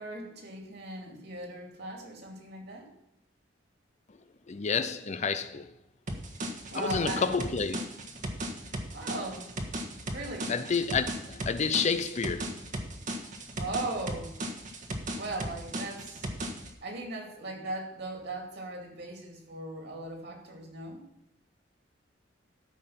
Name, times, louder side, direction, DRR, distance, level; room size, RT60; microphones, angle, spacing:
voice 1, 0.0-2.9 6.7-7.3 8.9-9.5 10.1-10.5 13.6-14.3 15.2-16.3 16.8-21.0, right 2 dB, 60° right, 2.5 m, -38 dB
voice 2, 4.5-5.7 6.7-7.8 10.5-12.6, left 5 dB, 40° left, 0.5 m, -29 dB
sound 1, 6.1-16.7, right 1 dB, 45° right, 1.4 m, -36 dB
13.5 x 5.4 x 5.8 m
head